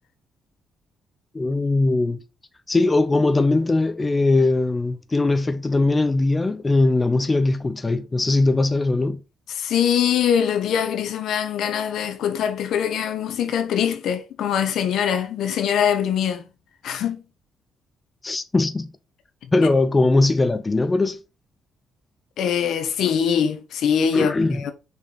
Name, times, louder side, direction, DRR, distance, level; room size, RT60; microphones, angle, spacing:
voice 1, 1.3-2.2 2.7-9.2 18.2-18.9 19.5-21.2 24.1-24.6, left 2 dB, 25° left, 0.6 m, -20 dB
voice 2, 9.5-16.4 16.8-17.2 19.6-19.7 22.4-24.7, left 8 dB, 75° left, 1.2 m, -23 dB
6.0 x 4.6 x 4.0 m
cardioid pair, 90°, 0 cm